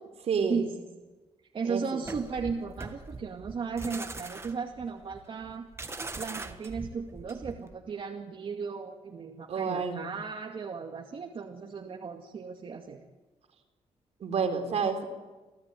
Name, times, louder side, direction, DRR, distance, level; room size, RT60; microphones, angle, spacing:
voice 1, 0.2-0.6 1.6-2.0 9.5-10.1 14.2-15.1, right 5 dB, 65° right, 5 dB, 4.2 m, -29 dB
voice 2, 1.5-5.7 6.2-13.0, right 5 dB, 50° right, 1 dB, 2.3 m, -36 dB
sound 1, 2.0-7.7, right 3 dB, 20° right, 1.8 m, -41 dB
28.5 x 17.0 x 9.3 m, 1.2 s
cardioid pair, 130°, 12 cm